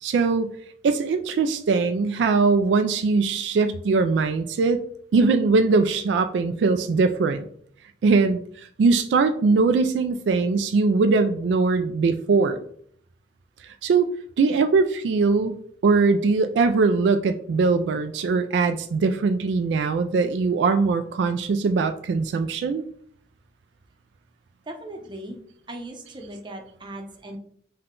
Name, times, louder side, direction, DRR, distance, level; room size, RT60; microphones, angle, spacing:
voice 1, 0.0-0.5 0.8-4.8 5.1-7.4 8.0-8.4 8.8-12.6 13.8-14.1 14.4-15.6 15.8-22.8, right 4 dB, 75° right, 9 dB, 0.3 m, -21 dB
voice 2, 24.6-25.4 25.7-27.4, right 1 dB, 25° right, 3 dB, 0.7 m, -38 dB
5.5 x 2.2 x 3.7 m, 0.62 s
head